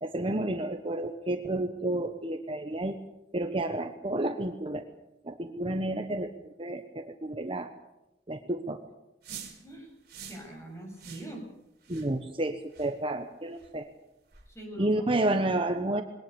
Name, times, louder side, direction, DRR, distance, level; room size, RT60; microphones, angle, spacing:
voice 1, 0.0-3.0 3.3-4.8 5.2-6.3 6.6-7.7 8.3-8.8 11.9-13.9 14.8-16.0, right 1 dB, 30° right, 6 dB, 1.1 m, -30 dB
sound 1, 9.2-9.6 10.1-10.4 11.0-11.3 11.8-12.1 12.7-12.9 13.6-13.7 14.3-14.5, right 8 dB, 55° right, 4.7 m, -45 dB
voice 2, 10.2-11.4 14.5-15.1, right 1 dB, 15° left, 0 dB, 8.0 m, -42 dB
22.0 x 18.5 x 7.0 m, 0.92 s
head